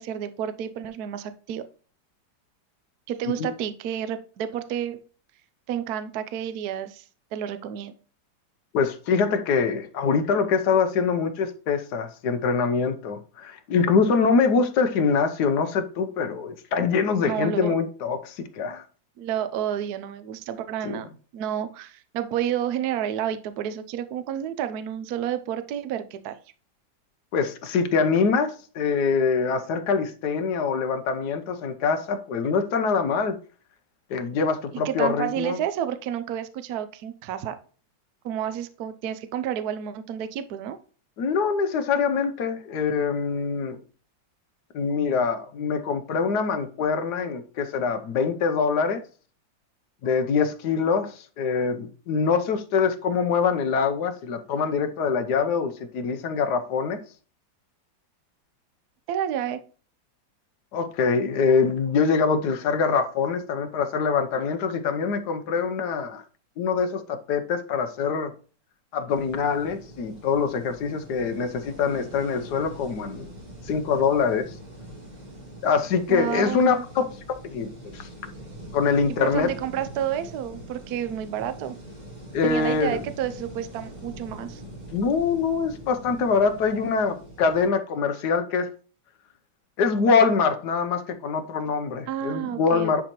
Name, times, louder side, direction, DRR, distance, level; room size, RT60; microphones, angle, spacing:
voice 1, 0.0-1.6 3.1-5.0 5.7-7.0 7.3-7.9 17.2-17.7 19.2-26.4 34.7-37.5 38.2-40.8 59.1-59.6 76.1-76.9 79.2-81.8 82.4-84.6 92.1-93.0, right 10 dB, 65° right, 1.0 m, -30 dB
voice 2, 8.7-18.8 20.8-21.0 27.3-33.4 34.1-35.6 41.2-43.8 44.7-49.0 50.0-57.0 60.7-66.2 66.6-68.3 68.9-73.3 73.6-74.5 75.6-77.0 77.5-78.1 78.7-79.5 82.3-83.0 84.9-88.7 89.8-93.0, left 5 dB, 65° left, 1.4 m, -24 dB
sound 1, 69.1-87.7, right 1 dB, 25° right, 1.8 m, -43 dB
10.0 x 4.2 x 3.0 m
omnidirectional pair, 2.1 m